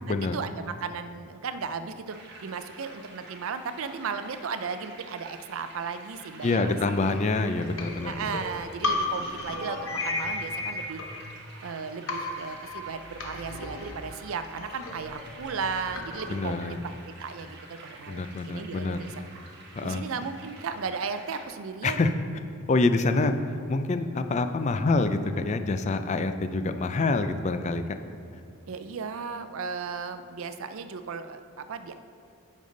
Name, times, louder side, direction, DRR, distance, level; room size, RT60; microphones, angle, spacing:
voice 1, 0.1-6.8 8.1-11.0 11.6-19.1 19.8-22.0 28.7-31.9, right 5 dB, 65° right, 10 dB, 0.4 m, -35 dB
sound 1, 2.1-21.5, right 2 dB, 50° right, 1.2 m, -49 dB
voice 2, 6.4-8.3 16.3-16.8 18.1-19.1 19.8-20.0 21.8-22.1 22.7-28.0, left 3 dB, 30° left, 9 dB, 0.3 m, -26 dB
sound 2, 7.8-11.7 12.1-16.5, left 2 dB, 65° left, 0.9 m, -34 dB
10.0 x 5.4 x 3.9 m, 2.6 s
head